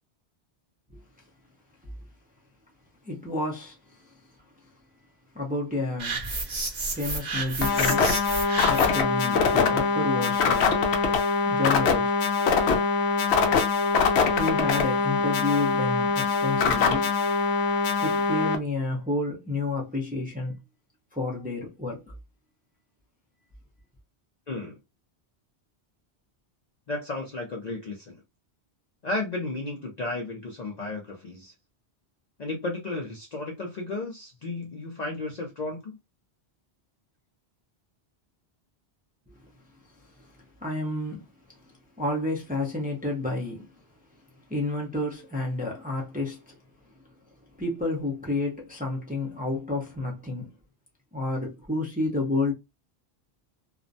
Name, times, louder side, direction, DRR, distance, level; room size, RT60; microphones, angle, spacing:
voice 1, 3.0-4.2 5.3-6.3 6.9-8.1 8.6-10.8 11.4-12.1 14.4-17.1 18.0-20.6 21.1-22.0 39.3-39.4 39.8-39.9 40.2-43.7 44.5-46.6 46.8-46.9 47.6-50.5 51.1-52.5, left 2 dB, 10° right, 0.5 m, -30 dB
sound 1, 6.0-9.1, right 3 dB, 45° right, 0.8 m, -31 dB
sound 2, 7.6-18.6, left 5 dB, 75° left, 0.8 m, -23 dB
voice 2, 24.5-24.8 26.9-28.2 29.0-31.5 32.4-36.0, left 2 dB, 50° left, 0.5 m, -33 dB
2.4 x 2.1 x 2.5 m
omnidirectional pair, 1.1 m